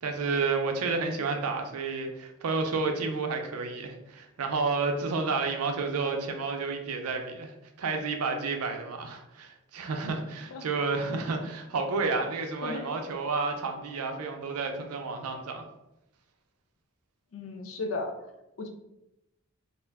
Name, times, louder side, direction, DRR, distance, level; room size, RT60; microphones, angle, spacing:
voice 1, 0.0-7.5 7.8-15.6, right 4 dB, 85° right, 4 dB, 0.5 m, -30 dB
voice 2, 17.3-18.1 18.6-18.7, left 3 dB, 65° left, 5 dB, 0.4 m, -34 dB
2.4 x 2.2 x 3.3 m, 0.90 s
head